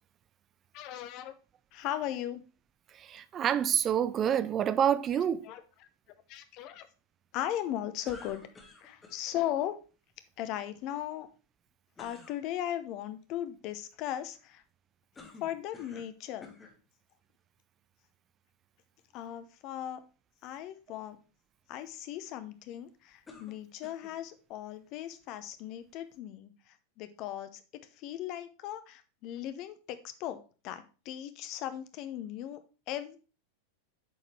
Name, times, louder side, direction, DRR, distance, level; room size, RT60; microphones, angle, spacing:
voice 1, 0.7-1.3 1.7-2.4 5.4-5.6 6.3-6.9 7.3-8.4 8.8-9.8 10.4-11.3 12.0-14.6 15.4-16.5 19.1-20.0 20.4-21.2 21.7-32.6 32.9-33.2, left 12 dB, 40° left, 0.8 m, -37 dB
voice 2, 2.9-5.5, right 9 dB, 25° right, 0.4 m, -27 dB
sound 1, 8.0-9.2 12.0-12.4 15.2-16.1 16.4-16.8 17.6-17.7 23.3-24.2, left 3 dB, 15° left, 1.6 m, -51 dB
8.4 x 5.0 x 3.2 m
figure-of-eight pair, 90°, 0 cm